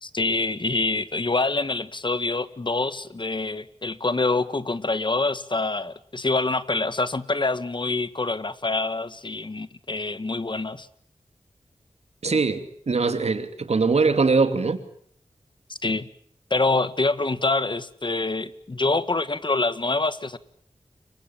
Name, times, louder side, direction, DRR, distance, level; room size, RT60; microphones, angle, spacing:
voice 1, 0.0-10.9 12.2-12.4 15.7-16.1 16.5-20.4, left 3 dB, 45° left, 1.8 m, -26 dB
voice 2, 12.2-14.8, right 4 dB, 70° right, 2.8 m, -22 dB
29.5 x 24.0 x 7.4 m
cardioid pair, 55°, 11 cm